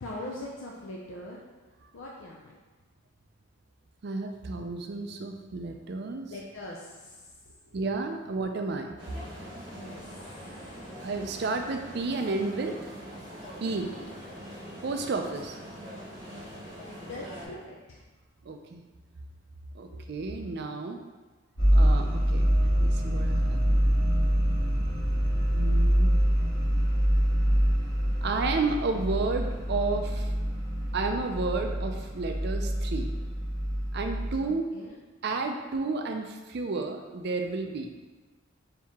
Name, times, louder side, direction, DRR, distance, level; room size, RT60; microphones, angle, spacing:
voice 1, 0.0-1.4 1.9-2.5 6.3-8.1 9.7-10.3 13.9-14.1 17.1-18.0 19.9-20.0 34.4-35.0, left 1 dB, 70° left, -3 dB, 0.5 m, -42 dB
voice 2, 4.0-6.3 7.7-8.9 11.0-12.8 13.6-13.9 14.8-15.6 18.4-18.8 19.7-21.0 21.7-23.8 25.5-26.1 28.2-30.3 30.9-33.1 33.9-34.7 35.2-37.9, right 3 dB, 50° right, 4 dB, 0.4 m, -32 dB
sound 1, 9.0-17.5, equal, 20° right, 0.9 m, -43 dB
sound 2, 21.6-34.4, equal, 20° left, 0.9 m, -25 dB
4.5 x 2.8 x 3.5 m, 1.3 s
head